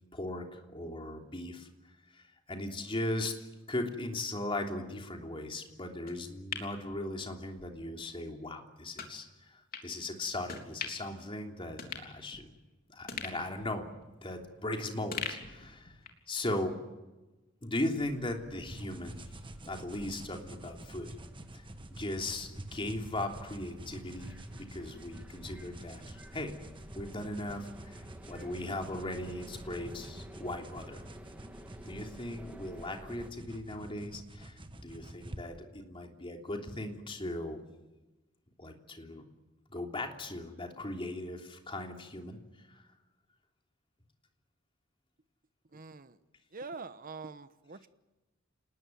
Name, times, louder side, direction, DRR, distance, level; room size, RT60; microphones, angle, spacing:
voice 1, 0.1-1.7 2.1-12.5 12.9-13.9 14.2-16.0 16.3-16.7 17.6-19.3 19.7-21.1 21.5-21.6 21.9-26.5 26.9-31.0 31.8-37.6 38.6-39.2 39.7-42.4 42.7-42.8, left 1 dB, 25° left, 3 dB, 3.2 m, -38 dB
sound 1, 6.1-7.7 8.1-8.2 9.0-9.1 9.7-9.9 10.5-11.1 11.4-11.5 11.8-12.7 13.1-14.7 15.1-16.3 16.6-16.7, left 6 dB, 45° left, 3.6 m, -42 dB
sound 2, 18.0-33.3, equal, 5° right, 2.5 m, -52 dB
sound 3, 18.7-35.4, right 1 dB, 25° right, 1.6 m, -48 dB
voice 2, 45.7-46.2 46.5-47.9, right 4 dB, 45° right, 12 dB, 1.1 m, -44 dB
28.5 x 20.0 x 9.4 m, 1.1 s
head